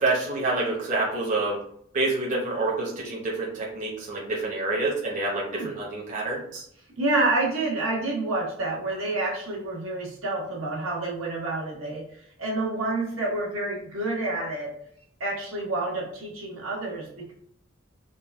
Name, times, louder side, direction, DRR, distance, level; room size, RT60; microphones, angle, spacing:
voice 1, 0.0-1.6 1.9-6.6, right 2 dB, 40° right, -4 dB, 1.0 m, -27 dB
voice 2, 7.0-12.0 12.4-14.7 15.2-17.3, right 2 dB, 75° right, -3 dB, 1.2 m, -28 dB
3.9 x 2.3 x 3.5 m, 0.68 s
head